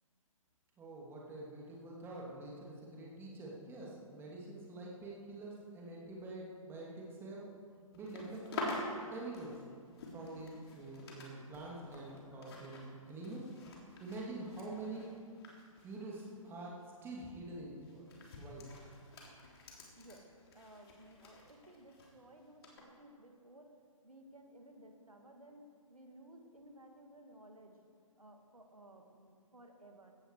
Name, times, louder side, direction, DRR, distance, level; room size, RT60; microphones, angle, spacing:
voice 1, 0.8-7.5 7.9-8.8 9.1-9.6 10.1-13.5 14.0-15.1 15.8-18.1 18.3-18.7, right 2 dB, 10° right, -3 dB, 2.8 m, -46 dB
sound 1, 7.9-11.3 11.5-16.5 16.8-17.1 17.8-22.1 22.6-22.8, left 2 dB, 45° left, 3.5 m, -47 dB
voice 2, 19.9-20.3 20.5-27.8 28.2-30.1, right 1 dB, 85° right, 3 dB, 2.1 m, -57 dB
17.0 x 14.0 x 4.9 m, 2.2 s
figure-of-eight pair, 130°, 18 cm